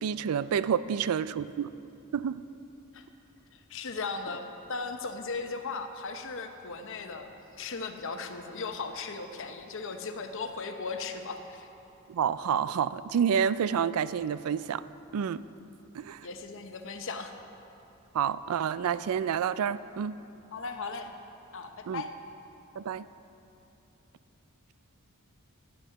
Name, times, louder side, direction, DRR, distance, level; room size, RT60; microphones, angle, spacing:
voice 1, 0.0-1.7 2.1-2.4 12.1-14.8 15.1-15.4 15.9-16.3 18.1-20.2 21.9-22.0 22.8-23.0, right 8 dB, 85° right, 16 dB, 0.3 m, -29 dB
voice 2, 3.5-11.7 16.2-17.3 20.5-21.1 21.5-22.1, left 4 dB, 60° left, 6 dB, 0.8 m, -37 dB
12.0 x 8.7 x 5.8 m, 2.9 s
head